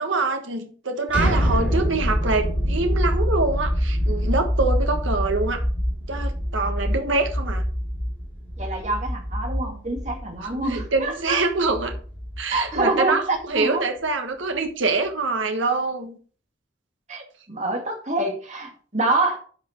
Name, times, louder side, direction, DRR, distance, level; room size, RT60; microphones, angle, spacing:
voice 1, 0.0-5.6 6.1-7.6 10.4-11.9 12.4-16.2, right 3 dB, 80° right, 5 dB, 1.3 m, -25 dB
sound 1, 1.1-12.9, equal, 5° right, 3.2 m, -25 dB
voice 2, 8.6-11.4 12.5-13.8 17.1-19.4, right 2 dB, 35° right, 2 dB, 2.2 m, -26 dB
11.0 x 5.7 x 4.5 m, 0.43 s
head